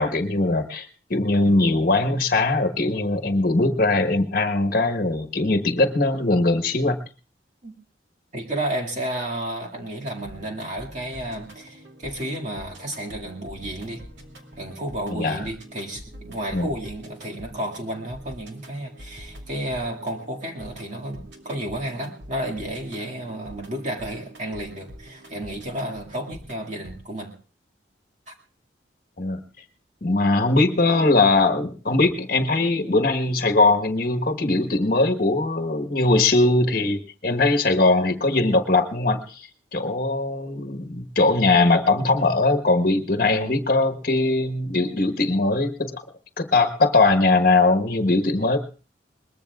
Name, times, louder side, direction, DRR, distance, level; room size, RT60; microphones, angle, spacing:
voice 1, 0.0-7.0 15.1-15.4 16.5-16.7 29.2-29.4 30.0-46.0 46.4-48.6, left 2 dB, 50° left, 8 dB, 1.2 m, -21 dB
voice 2, 8.3-14.0 14.6-27.3 28.3-28.4 43.2-43.6, right 1 dB, 40° right, 0 dB, 2.1 m, -32 dB
sound 1, 10.0-27.0, equal, 70° right, 2.7 m, -45 dB
22.0 x 20.5 x 2.4 m, 0.38 s
head